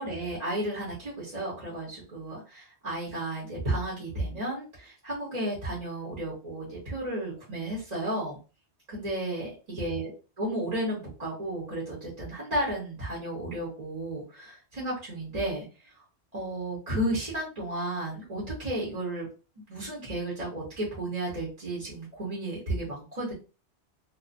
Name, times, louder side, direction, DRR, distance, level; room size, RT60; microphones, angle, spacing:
voice 1, 0.0-8.4 8.9-10.1 10.4-15.9 16.3-19.3 19.7-23.3, right 1 dB, 35° right, -6 dB, 1.1 m, -33 dB
2.4 x 2.4 x 2.5 m, 0.33 s
omnidirectional pair, 1.1 m